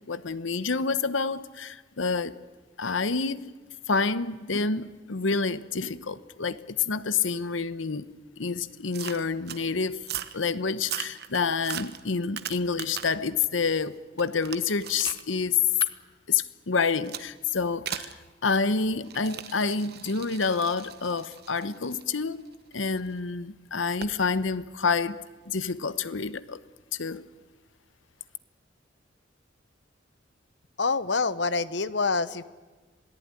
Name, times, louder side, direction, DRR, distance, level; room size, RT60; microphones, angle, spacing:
voice 1, 0.1-2.4 2.8-3.5 3.9-10.0 10.3-15.6 16.3-22.4 22.7-26.6 26.9-27.2, left 4 dB, 85° left, 1.0 m, -28 dB
sound 1, 8.9-9.6 10.0-10.4 10.8-13.3 13.7-15.2 15.8-15.9 17.1-17.3 17.9-18.2 19.0-23.0 24.0-24.2, right 9 dB, 55° right, 1.2 m, -38 dB
voice 2, 30.8-32.4, left 4 dB, 65° left, 1.0 m, -26 dB
27.0 x 18.5 x 9.8 m
head